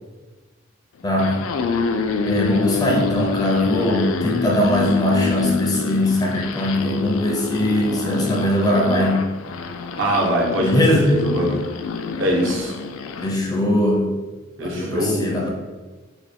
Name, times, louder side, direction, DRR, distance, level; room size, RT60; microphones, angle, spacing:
sound 1, 1.0-13.3, left 4 dB, 80° left, 0.3 m, -26 dB
voice 1, 1.0-1.4 2.2-9.3 10.6-11.2 13.2-14.1 14.6-15.5, left 1 dB, 20° left, -1 dB, 0.5 m, -20 dB
voice 2, 10.0-10.7 11.1-11.6 12.2-12.7 14.6-15.3, right 1 dB, 65° right, 0 dB, 0.8 m, -22 dB
3.1 x 2.2 x 4.3 m, 1.3 s
head